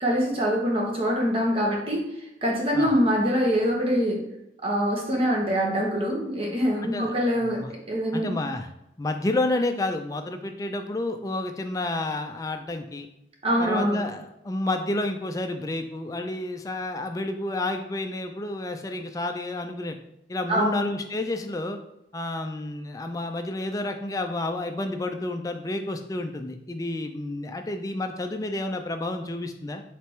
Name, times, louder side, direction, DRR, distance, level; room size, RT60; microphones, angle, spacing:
voice 1, 0.0-2.0 2.4-4.2 4.6-7.6 7.9-8.3 13.4-14.0 20.5-20.9, equal, 30° right, -1 dB, 0.9 m, -24 dB
voice 2, 6.8-7.7 8.1-8.7 9.0-13.1 13.6-20.0 20.3-21.8 22.1-29.8, left 2 dB, 20° left, 5 dB, 0.3 m, -30 dB
4.5 x 3.3 x 3.2 m, 0.84 s
head